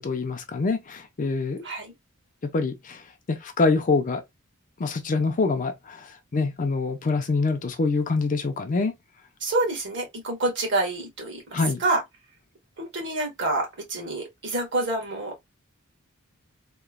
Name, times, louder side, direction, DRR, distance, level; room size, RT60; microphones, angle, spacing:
voice 1, 0.0-1.7 2.5-3.0 3.3-4.2 4.8-8.9 11.5-11.8, left 3 dB, 40° left, 0.5 m, -25 dB
voice 2, 9.4-12.0 12.8-15.5, right 2 dB, 60° right, 1.3 m, -27 dB
3.0 x 2.1 x 2.2 m
head